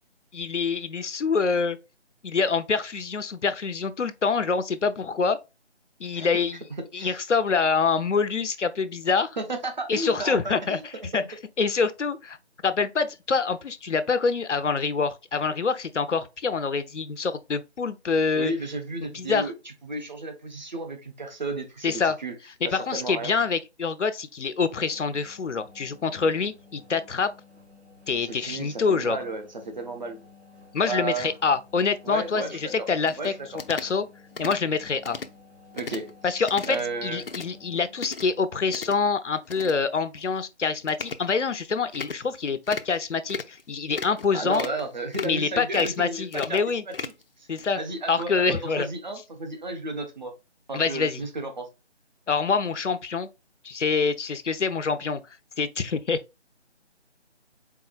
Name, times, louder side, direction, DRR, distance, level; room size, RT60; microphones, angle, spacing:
voice 1, 0.3-1.8 2.2-5.4 6.0-6.6 6.9-9.4 9.9-10.8 11.1-11.2 11.6-12.4 12.6-18.5 19.1-19.5 21.8-22.2 22.7-27.3 28.1-29.2 30.7-33.3 33.7-34.1 34.4-35.2 36.2-36.8 37.0-44.6 45.2-46.8 47.5-47.8 48.1-48.9 50.7-51.2 52.3-53.3 53.6-55.2 55.6-56.2, left 5 dB, 90° left, 0.7 m, -26 dB
voice 2, 9.4-10.8 18.3-19.5 19.8-22.3 22.6-23.3 28.2-30.2 30.9-31.3 32.0-32.9 33.2-33.5 35.7-37.2 44.3-46.9 47.4-47.5 47.7-50.3 50.7-51.7, right 2 dB, 40° right, 1.1 m, -33 dB
sound 1, 24.5-38.1, left 4 dB, 65° right, 2.7 m, -53 dB
sound 2, 33.1-33.3 33.6-33.9 34.4-34.6 35.0-35.3 35.7-36.1 36.4-36.8 37.1-37.5 38.0-38.3 38.7-39.0 39.5-39.8 40.2-40.3 40.9-41.2 41.9-42.2 42.7-43.0 43.3-43.6 43.9-44.3 44.5-44.8 45.1-45.4 45.7-46.0 46.3-47.2 47.6-47.7, left 4 dB, 55° left, 0.5 m, -36 dB
4.7 x 3.8 x 2.3 m
figure-of-eight pair, 170°, 35 cm